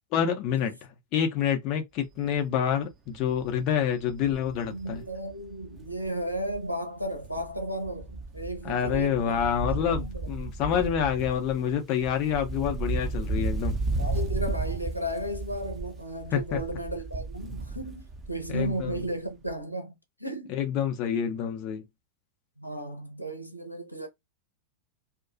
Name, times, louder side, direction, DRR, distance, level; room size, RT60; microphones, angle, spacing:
voice 1, 0.1-0.7 1.1-5.0 8.6-13.8 16.3-16.6 18.5-19.0 20.5-21.8, left 8 dB, 40° left, 0.6 m, -27 dB
Wind, 2.2-2.4 2.8-2.9 3.2-6.7 7.0-19.2 19.5-19.6, right 3 dB, 25° right, 0.6 m, -34 dB
voice 2, 4.7-10.6 14.0-19.9 20.2-20.6 22.6-24.1, right 1 dB, 90° left, 0.7 m, -34 dB
2.9 x 2.3 x 2.5 m
figure-of-eight pair, 90°, 0 cm